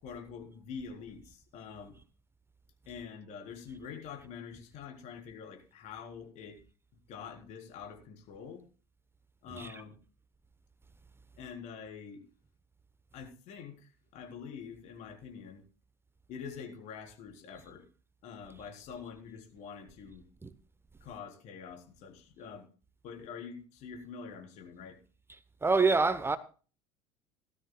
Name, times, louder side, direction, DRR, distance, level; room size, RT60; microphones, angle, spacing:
voice 1, 0.0-2.0 2.9-6.6 7.1-8.6 9.4-10.0 11.4-12.3 13.1-15.6 16.3-17.8 18.2-20.2 21.0-22.7 23.0-25.0, left 6 dB, 55° left, 3.9 m, -46 dB
voice 2, 25.6-26.4, right 4 dB, 15° right, 0.9 m, -26 dB
17.5 x 13.0 x 2.3 m
figure-of-eight pair, 70°, 15 cm